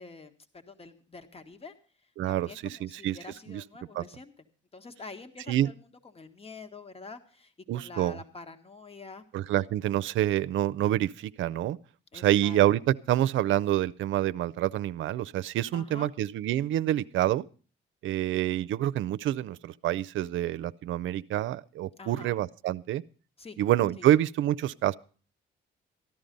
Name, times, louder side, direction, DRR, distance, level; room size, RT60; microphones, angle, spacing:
voice 1, 0.0-1.7 2.0-4.3 4.7-5.9 6.1-9.2 12.1-12.6 15.7-16.1 22.0-22.4 23.4-23.6 24.0-24.1, left 3 dB, 30° left, 9 dB, 1.7 m, -46 dB
voice 2, 2.2-3.2 3.5-3.6 3.9-4.0 5.5-5.7 7.7-8.2 9.3-11.8 12.1-17.4 18.0-23.0 23.6-24.9, right 13 dB, 80° right, 14 dB, 0.5 m, -27 dB
14.5 x 11.5 x 5.3 m, 0.38 s
cardioid pair, 90°, 20 cm